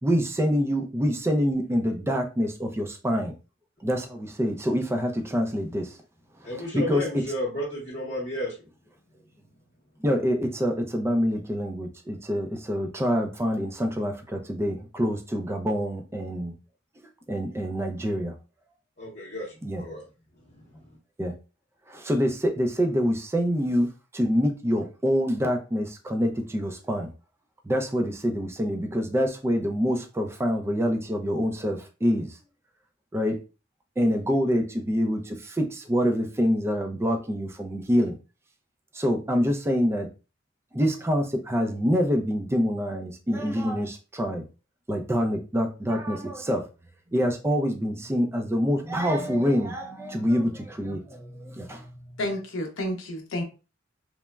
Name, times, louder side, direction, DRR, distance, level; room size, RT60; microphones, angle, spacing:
voice 1, 0.0-3.3 3.8-6.0 6.4-7.2 10.0-16.5 17.3-18.3 19.6-19.9 21.2-21.3 21.9-27.1 27.6-32.4 33.1-33.4 34.0-38.1 38.9-40.1 40.7-44.4 44.9-46.7 47.1-52.2, equal, 15° right, 0.3 m, -26 dB
voice 2, 6.4-8.5 19.0-19.5 19.7-20.0, left 1 dB, 40° left, 0.7 m, -32 dB
voice 3, 52.2-53.4, left 1 dB, 75° left, 0.6 m, -30 dB
3.1 x 2.0 x 2.2 m
head